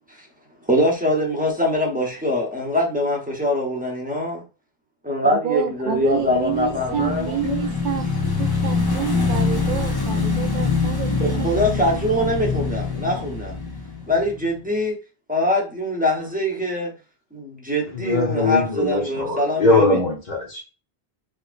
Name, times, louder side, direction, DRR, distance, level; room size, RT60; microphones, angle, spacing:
voice 1, 0.7-4.4 5.0-7.6 11.2-13.6 14.1-15.0 15.3-16.9 17.3-20.0, left 1 dB, 10° right, 0.8 m, -23 dB
voice 2, 5.2-11.6, right 9 dB, 55° right, 0.6 m, -29 dB
Motorcycle / Engine, 6.1-14.6, left 4 dB, 30° left, 0.4 m, -24 dB
voice 3, 17.9-20.6, left 2 dB, 50° left, 1.0 m, -21 dB
3.4 x 2.9 x 2.5 m
omnidirectional pair, 1.0 m